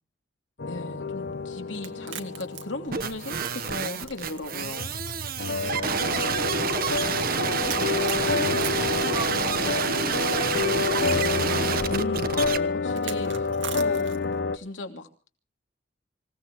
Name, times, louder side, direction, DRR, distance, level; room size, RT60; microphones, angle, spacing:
voice 1, 0.6-4.9 11.9-13.5 13.7-14.1 14.5-15.1, left 2 dB, 80° left, 5 dB, 2.8 m, -37 dB
sound 1, 0.6-14.6, left 4 dB, 60° left, 1.0 m, -29 dB
voice 2, 1.7-2.5 5.6-8.7 9.0-11.6, right 2 dB, 20° right, 5 dB, 2.3 m, -43 dB
sound 2, 1.8-4.4 4.7-4.8 5.7-5.8 7.7-9.8 10.9-11.0 12.9-14.4, right 9 dB, 75° right, 1.8 m, -39 dB
sound 3, 2.9-12.6, right 6 dB, 50° right, 1.1 m, -28 dB
26.5 x 17.0 x 3.0 m, 0.36 s
head